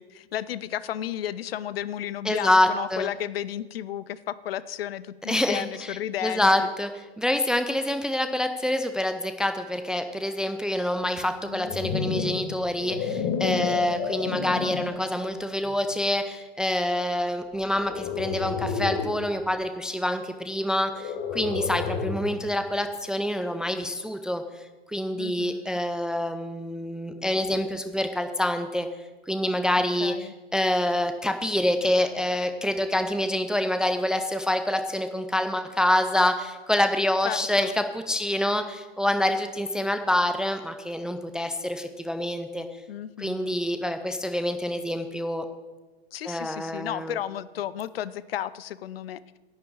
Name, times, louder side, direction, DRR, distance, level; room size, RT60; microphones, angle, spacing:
voice 1, 0.0-6.7 13.5-14.1 25.2-25.8 29.8-30.3 37.2-37.7 42.9-43.6 46.1-49.2, left 11 dB, 65° left, 17 dB, 0.7 m, -33 dB
voice 2, 2.3-3.1 5.3-5.7 6.2-6.9 7.2-24.4 24.9-28.9 29.3-30.1 30.5-42.7 43.2-45.5 46.3-47.2, left 1 dB, ahead, 8 dB, 0.3 m, -26 dB
sound 1, 11.4-15.0 15.7-15.9 17.7-19.2 20.9-22.4, left 6 dB, 40° left, 1.7 m, -30 dB
11.0 x 7.5 x 8.4 m, 1.2 s
figure-of-eight pair, 105°, 32 cm